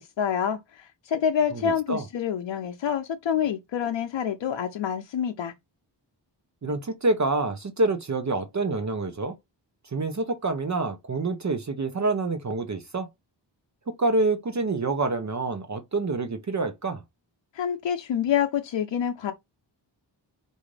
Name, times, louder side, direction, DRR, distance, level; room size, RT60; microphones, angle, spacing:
voice 1, 0.0-5.5 17.5-19.3, left 8 dB, 75° left, 0.6 m, -27 dB
voice 2, 1.5-2.0 6.6-9.3 9.9-13.1 14.0-17.0, right 3 dB, 40° right, 0.8 m, -27 dB
4.8 x 2.7 x 3.2 m
cardioid pair, 70°, 44 cm